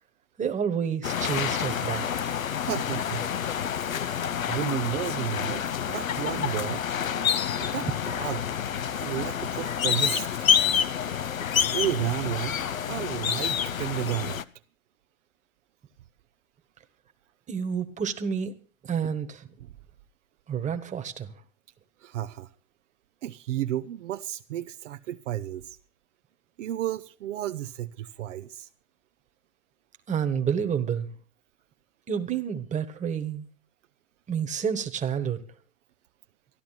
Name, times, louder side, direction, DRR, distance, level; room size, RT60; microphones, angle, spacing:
voice 1, 0.4-2.4 17.5-18.5 18.8-19.5 20.5-21.3 30.1-31.1 32.1-33.5 34.3-35.4, right 7 dB, 20° right, 1.4 m, -29 dB
sound 1, 1.0-14.4, left 8 dB, 85° left, 0.8 m, -28 dB
voice 2, 2.5-3.3 4.5-6.8 7.6-8.5 9.0-10.5 11.7-14.4 19.6-19.7 22.0-22.5 23.2-25.8 26.6-28.7, right 13 dB, 65° right, 0.7 m, -32 dB
14.0 x 11.5 x 5.8 m
hypercardioid pair, 100°, 40 cm